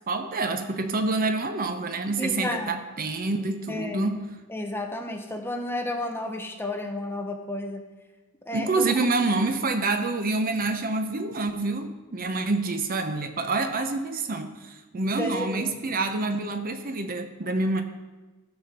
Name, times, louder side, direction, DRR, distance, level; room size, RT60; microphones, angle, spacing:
voice 1, 0.1-4.3 8.5-17.8, right 3 dB, 40° right, 8 dB, 0.7 m, -27 dB
voice 2, 2.2-2.7 3.7-4.1 4.5-7.8 8.5-8.8 15.2-15.7, left 1 dB, 10° left, 3 dB, 0.9 m, -32 dB
15.0 x 5.0 x 6.6 m, 1.2 s
head